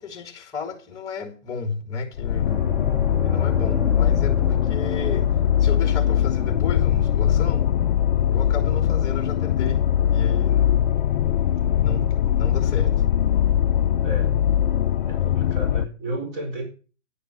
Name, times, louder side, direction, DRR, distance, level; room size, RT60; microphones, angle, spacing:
voice 1, 0.0-2.6 3.2-5.3 5.6-7.8 8.3-9.8 10.1-10.9 11.8-13.0, left 4 dB, 10° left, 2.2 m, -32 dB
sound 1, 2.2-15.8, left 10 dB, 40° left, 0.6 m, -21 dB
sound 2, 2.5-11.4 11.7-11.9 14.0-14.1, equal, 5° right, 1.3 m, -36 dB
voice 2, 14.0-14.4 15.1-16.6, right 1 dB, 25° right, 4.7 m, -32 dB
10.0 x 9.0 x 6.1 m
hypercardioid pair, 150°, 38 cm